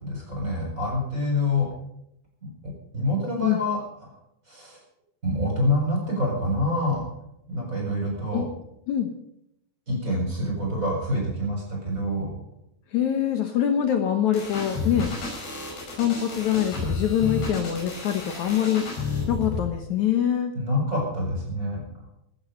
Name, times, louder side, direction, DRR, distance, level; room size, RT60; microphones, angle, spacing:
voice 1, 0.0-1.7 2.4-4.2 4.5-4.8 5.2-7.1 7.5-8.4 9.9-12.3 20.5-21.8, left 1 dB, 15° right, -1 dB, 7.2 m, -27 dB
voice 2, 12.9-15.1 15.9-18.8 19.3-20.5, left 10 dB, 85° left, 6 dB, 1.6 m, -24 dB
sound 1, 14.3-19.6, left 4 dB, 60° left, 7.3 m, -31 dB
17.0 x 13.0 x 5.4 m, 0.79 s
omnidirectional pair, 5.2 m